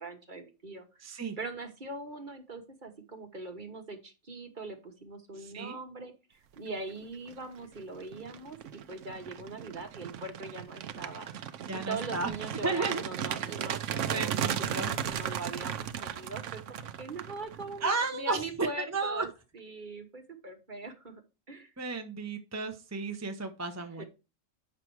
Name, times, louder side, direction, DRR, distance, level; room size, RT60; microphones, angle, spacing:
voice 1, 0.0-1.1 1.4-11.3 11.7-19.3 19.5-21.2 21.5-21.7 23.8-24.1, right 3 dB, 40° right, 5 dB, 1.5 m, -42 dB
voice 2, 1.0-1.4 5.4-5.8 11.7-12.3 12.6-13.0 14.0-14.9 17.8-19.3 21.8-24.0, right 3 dB, 15° right, 5 dB, 0.8 m, -33 dB
sound 1, 7.0-7.3 7.8-17.9, right 9 dB, 70° right, 1.0 m, -36 dB
8.7 x 5.9 x 4.7 m, 0.29 s
omnidirectional pair, 1.4 m